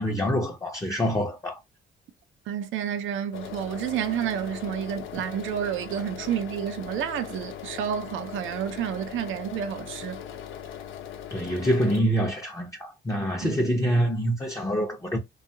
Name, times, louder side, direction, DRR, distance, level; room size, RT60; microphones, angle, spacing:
voice 1, 0.0-1.6 11.3-15.2, equal, 15° left, 0.6 m, -26 dB
voice 2, 2.5-10.2 13.4-13.5, right 9 dB, 80° right, 0.6 m, -30 dB
sound 1, 3.3-12.0, left 9 dB, 80° left, 0.6 m, -39 dB
2.7 x 2.3 x 2.6 m
cardioid pair, 90°, 20 cm